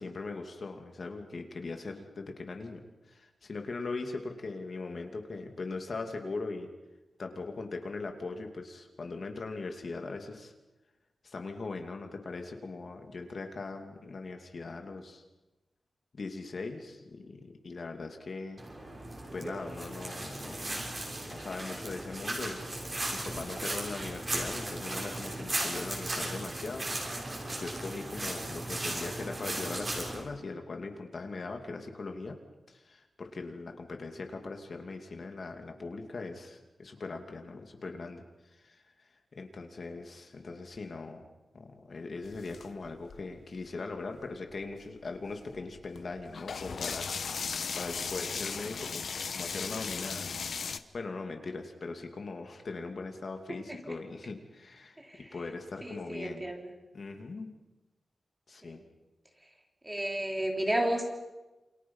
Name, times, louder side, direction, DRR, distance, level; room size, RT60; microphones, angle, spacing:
voice 1, 0.0-6.7 7.2-10.5 11.2-15.2 16.1-18.6 19.3-26.9 27.6-32.4 32.7-41.3 41.5-56.5 56.9-57.5 58.5-58.8, left 3 dB, 50° left, 4 dB, 2.5 m, -40 dB
sound 1, 18.6-30.2, right 1 dB, 30° right, 6.1 m, -36 dB
sound 2, 42.2-43.6 44.2-44.3 44.5-50.8, left 5 dB, 70° left, 1.1 m, -37 dB
voice 2, 55.8-56.7 58.6-58.8 59.8-61.1, right 1 dB, 15° right, 2 dB, 3.3 m, -32 dB
28.5 x 27.5 x 5.6 m, 1.1 s
wide cardioid pair, 175°, 0 cm